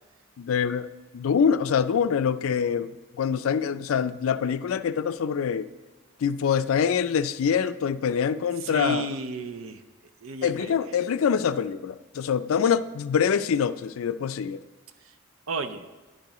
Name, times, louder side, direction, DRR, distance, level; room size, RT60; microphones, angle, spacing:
voice 1, 0.4-0.9 1.1-5.7 6.2-9.1 10.4-14.6, left 7 dB, 80° left, 12 dB, 0.4 m, -25 dB
voice 2, 8.6-9.8 10.2-10.7 15.5-15.8, right 2 dB, 75° right, 10 dB, 0.6 m, -32 dB
10.5 x 10.5 x 3.0 m, 1.3 s
head